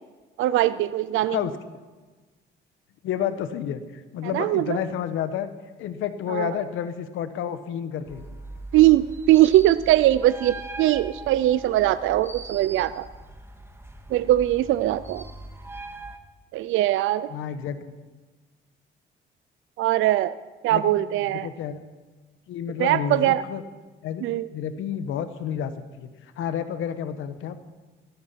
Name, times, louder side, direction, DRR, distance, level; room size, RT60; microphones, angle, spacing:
voice 1, 0.4-1.4 4.2-4.8 6.3-6.6 8.7-13.1 14.1-15.2 16.5-17.3 19.8-20.4 20.6-21.5 22.8-23.4 24.2-24.5, right 14 dB, 85° right, 15 dB, 0.5 m, -21 dB
voice 2, 3.0-5.5 5.8-8.2 17.3-17.9 20.7-20.8 21.4-21.8 22.5-23.6 24.0-24.3 24.5-27.6, left 9 dB, 85° left, 11 dB, 1.1 m, -30 dB
sound 1, 8.0-16.2, right 2 dB, 10° right, 1.7 m, -41 dB
15.0 x 15.0 x 5.7 m, 1.3 s
cardioid pair, 90°, 20 cm